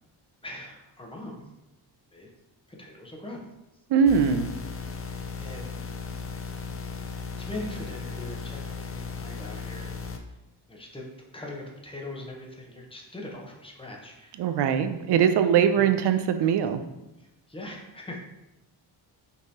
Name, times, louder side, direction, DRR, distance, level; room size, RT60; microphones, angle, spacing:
voice 1, 0.4-1.4 2.1-2.3 2.7-3.4 4.9-5.8 7.4-10.1 10.7-11.0 11.3-14.5 15.8-15.9 17.2-18.2, left 1 dB, 10° left, -1 dB, 0.9 m, -41 dB
voice 2, 3.9-4.5 14.4-16.8, right 7 dB, 65° right, 9 dB, 0.5 m, -21 dB
sound 1, 4.1-10.2, left 5 dB, 30° left, 0.4 m, -36 dB
5.4 x 3.0 x 2.8 m, 0.94 s
cardioid pair, 95°, 44 cm